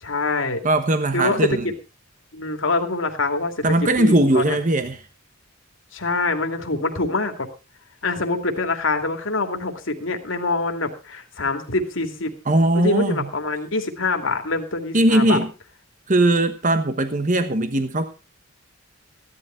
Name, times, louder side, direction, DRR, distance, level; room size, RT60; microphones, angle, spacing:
voice 1, 0.0-0.6 1.1-1.7 2.3-4.6 5.9-7.5 8.0-12.3 12.7-15.4, left 3 dB, 70° left, 2.5 m, -25 dB
voice 2, 0.6-1.7 3.6-5.0 12.5-13.3 14.9-15.5 16.1-18.1, right 1 dB, 40° right, 1.2 m, -19 dB
15.5 x 11.5 x 4.4 m
head